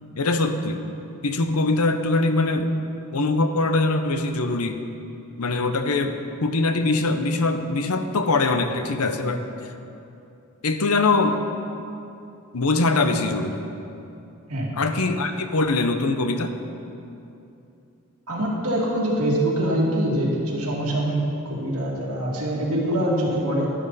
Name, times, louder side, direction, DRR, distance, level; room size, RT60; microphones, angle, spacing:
voice 1, 0.2-0.9 1.2-2.7 3.1-4.9 5.4-9.4 10.6-11.4 12.5-13.7 14.8-16.6, left 3 dB, 75° left, 8 dB, 0.8 m, -22 dB
voice 2, 18.3-23.7, right 1 dB, 75° right, -3 dB, 2.3 m, -24 dB
12.0 x 11.5 x 4.1 m, 2.7 s
head